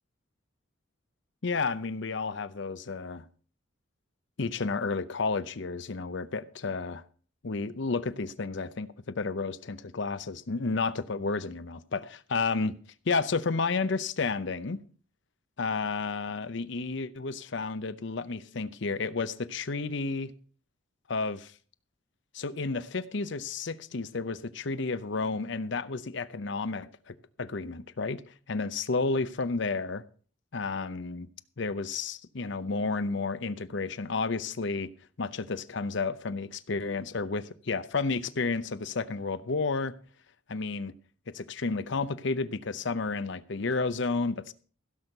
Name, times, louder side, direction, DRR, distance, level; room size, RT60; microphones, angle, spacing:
voice 1, 1.4-3.2 4.4-7.0 7.4-12.8 13.1-14.8 15.6-20.3 21.1-21.5 22.3-30.0 30.5-31.3 31.6-34.9 35.2-39.9 40.5-40.9 41.3-44.5, left 4 dB, 60° left, 0.7 m, -31 dB
16.0 x 6.3 x 6.6 m
head